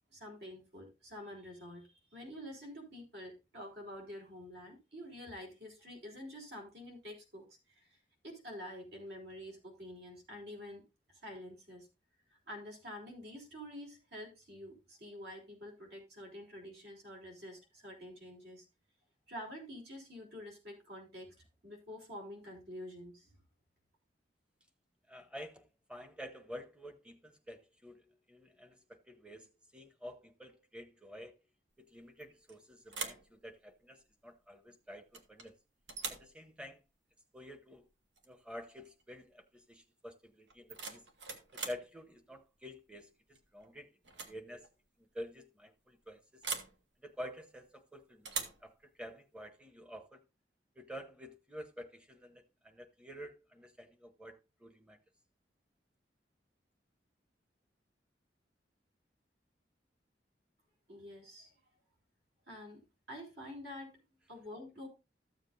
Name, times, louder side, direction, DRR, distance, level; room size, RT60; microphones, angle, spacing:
voice 1, 0.1-7.9 8.2-10.8 11.2-11.9 12.3-18.6 19.3-21.4 21.6-23.3 60.9-61.5 62.5-64.0 64.3-64.9, equal, 65° right, 3.9 m, -48 dB
voice 2, 25.1-31.3 31.8-35.6 36.1-36.8 37.3-37.9 38.3-41.0 41.5-43.9 44.2-44.7 45.1-46.5 47.0-48.3 48.6-50.2 50.8-55.0, equal, 5° right, 0.9 m, -49 dB
sound 1, 32.2-32.5 32.9-33.3 35.1-35.5 35.9-36.3 38.2-38.3 38.7-39.0 40.5-41.9 43.3-43.6 44.0-44.4 44.6-44.7 46.4-46.8 48.2-48.6, right 4 dB, 80° right, 1.4 m, -41 dB
13.5 x 7.4 x 2.6 m
head